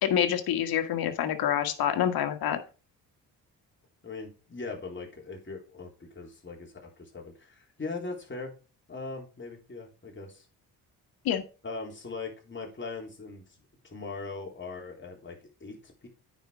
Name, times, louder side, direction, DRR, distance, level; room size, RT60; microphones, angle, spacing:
voice 1, 0.0-2.6 11.2-11.4, left 10 dB, 75° left, 7 dB, 1.6 m, -27 dB
voice 2, 4.0-8.5 8.9-10.4 11.6-13.4 13.8-16.1, left 3 dB, 30° left, 1 dB, 3.6 m, -40 dB
9.1 x 5.3 x 5.1 m, 0.34 s
supercardioid pair, 75°, 37 cm